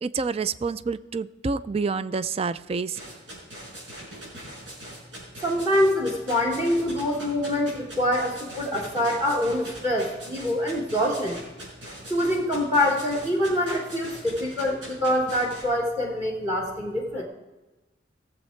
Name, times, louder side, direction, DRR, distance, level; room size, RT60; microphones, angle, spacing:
voice 1, 0.0-3.0, right 4 dB, 30° right, 15 dB, 0.3 m, -28 dB
sound 1, 2.9-15.6, right 1 dB, 90° right, 4.9 m, -41 dB
voice 2, 5.4-11.4 12.1-17.2, left 1 dB, 15° right, 1 dB, 1.3 m, -25 dB
17.0 x 7.4 x 4.5 m, 1.1 s
head